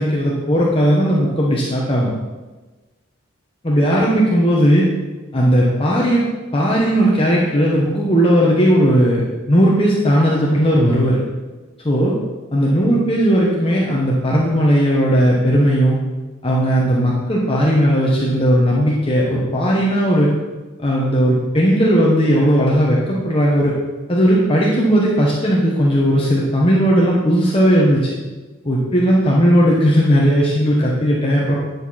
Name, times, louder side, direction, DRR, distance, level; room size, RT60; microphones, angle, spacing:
voice 1, 0.0-2.1 3.6-4.9 5.3-6.2 6.5-9.2 9.5-11.2 11.8-12.1 12.5-16.0 16.4-20.3 20.8-23.7 24.1-28.1 28.6-31.6, equal, 25° left, -4 dB, 1.2 m, -16 dB
10.0 x 6.7 x 4.2 m, 1.2 s
head